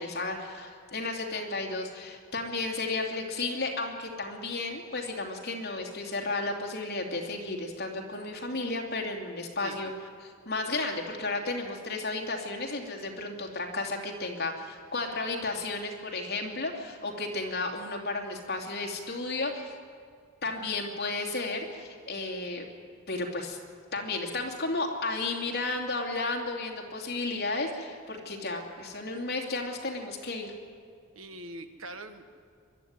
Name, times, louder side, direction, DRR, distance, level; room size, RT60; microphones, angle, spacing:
voice 1, 0.0-9.9 10.2-19.8 20.4-22.6 23.1-23.6 23.9-30.5, left 3 dB, 50° left, 1 dB, 2.7 m, -33 dB
voice 2, 31.1-32.2, right 2 dB, 80° right, 9 dB, 1.4 m, -42 dB
23.5 x 12.0 x 9.6 m, 2.2 s
head